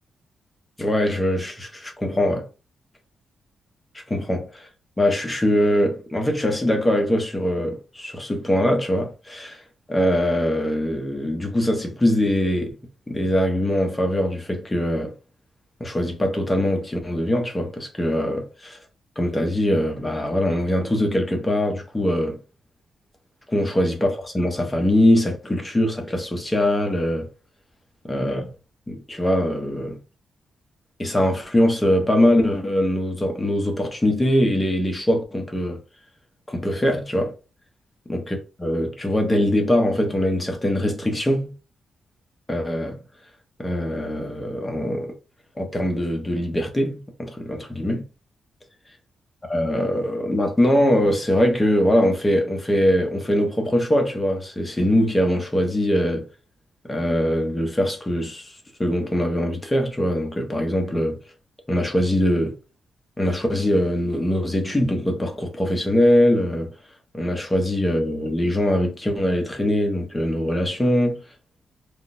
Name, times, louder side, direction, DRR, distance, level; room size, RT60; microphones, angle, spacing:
voice 1, 0.8-2.5 4.1-4.7 5.0-12.8 13.1-15.1 15.8-18.8 19.2-22.4 23.5-27.3 28.1-28.5 28.9-30.0 31.0-35.8 36.5-37.3 38.1-41.5 42.5-43.0 43.6-45.1 45.6-48.0 49.5-56.3 56.8-61.2 61.7-62.5 63.2-66.7 67.1-71.2, left 1 dB, 15° left, 1.0 m, -22 dB
3.5 x 2.3 x 2.8 m
cardioid pair, 90°, 0 cm